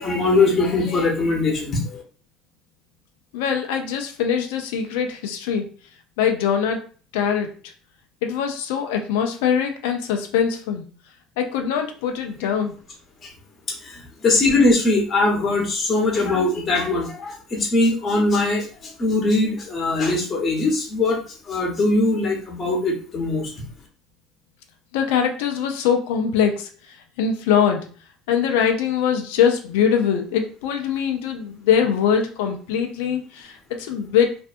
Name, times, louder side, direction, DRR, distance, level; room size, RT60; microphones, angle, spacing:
voice 1, 0.0-2.0 14.2-18.6 19.0-21.2 21.5-23.5, left 2 dB, 35° left, -1 dB, 0.9 m, -21 dB
voice 2, 3.3-5.7 6.2-6.8 7.1-7.6 8.2-10.9 11.4-12.8 24.9-27.9 28.3-34.4, left 7 dB, 85° left, 4 dB, 0.5 m, -22 dB
2.5 x 2.2 x 2.5 m, 0.39 s
supercardioid pair, 100°, 0 cm